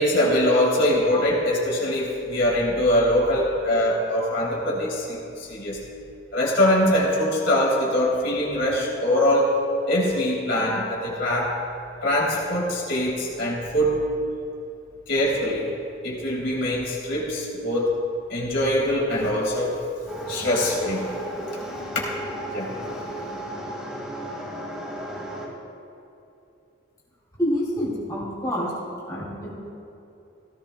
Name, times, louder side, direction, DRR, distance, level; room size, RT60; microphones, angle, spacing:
voice 1, 0.0-5.8 6.3-9.5 9.9-11.6 12.0-14.0 15.1-15.7 16.0-18.0 18.3-19.7 20.3-21.1 22.5-22.7, left 1 dB, 65° left, -5 dB, 3.4 m, -23 dB
sound 1, 20.1-25.5, right 1 dB, 5° right, 2.0 m, -34 dB
voice 2, 27.4-28.7 29.0-29.5, equal, 20° left, -6 dB, 2.8 m, -27 dB
17.0 x 15.5 x 2.3 m, 2.7 s
head